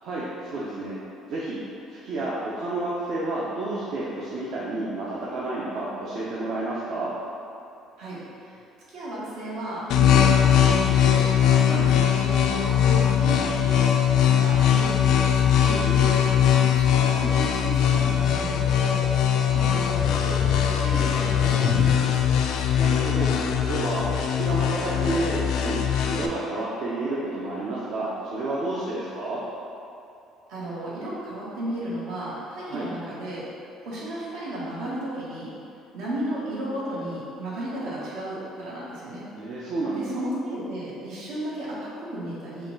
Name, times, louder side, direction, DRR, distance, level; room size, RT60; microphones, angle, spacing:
voice 1, 0.0-0.9 1.2-1.6 2.0-7.1 11.6-11.8 15.6-16.3 22.8-23.4 23.7-25.8 26.1-29.4 32.6-32.9 39.4-40.2, right 2 dB, 60° right, -7 dB, 0.7 m, -30 dB
voice 2, 8.0-8.6 8.9-13.8 14.2-15.7 16.5-19.0 19.4-22.3 30.5-33.4 33.8-35.5 35.9-39.2 39.9-42.7, right 1 dB, 80° right, -8 dB, 1.4 m, -34 dB
sound 1, 9.9-26.3, left 8 dB, 65° left, 0.3 m, -21 dB
5.6 x 2.4 x 3.9 m, 2.6 s
cardioid pair, 140°, 0 cm